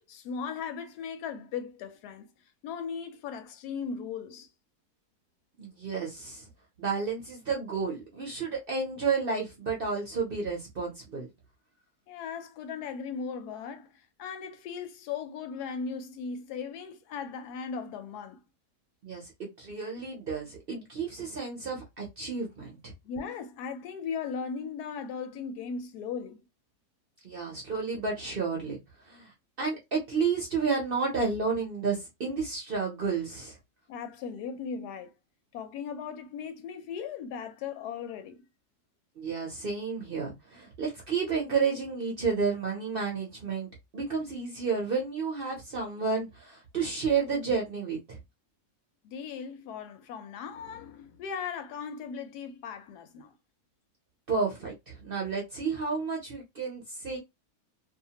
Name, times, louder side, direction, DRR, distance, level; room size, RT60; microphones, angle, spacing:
voice 1, 0.0-2.3 2.6-4.5 12.1-18.4 23.0-26.4 33.9-35.1 35.5-38.5 49.0-53.3, left 6 dB, 80° left, 1.1 m, -38 dB
voice 2, 5.6-6.5 6.8-11.3 19.0-22.9 27.2-28.8 29.1-29.3 29.6-33.6 39.2-48.2 54.3-57.2, right 5 dB, 50° right, 0.7 m, -31 dB
2.7 x 2.1 x 2.8 m
omnidirectional pair, 1.7 m